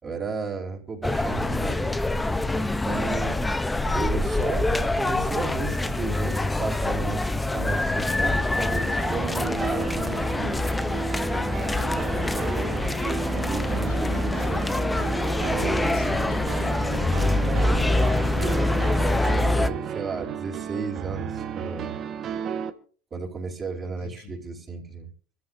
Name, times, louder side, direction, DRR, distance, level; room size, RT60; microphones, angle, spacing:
voice 1, 0.0-1.9 2.5-3.4 3.9-10.7 11.9-12.9 13.3-14.6 15.5-15.8 17.4-18.5 19.0-22.0 23.1-25.1, right 4 dB, 25° right, -1 dB, 4.7 m, -34 dB
sound 1, 1.0-19.7, left 2 dB, 10° left, 0.8 m, -25 dB
sound 2, 7.7-19.2, left 5 dB, 25° left, 1.3 m, -37 dB
sound 3, 9.0-22.7, right 8 dB, 40° right, 1.4 m, -33 dB
voice 2, 13.6-14.5 15.0-16.5 23.8-24.3, left 4 dB, 80° left, 6 dB, 7.5 m, -43 dB
25.0 x 14.0 x 2.7 m, 0.41 s
supercardioid pair, 110°, 0 cm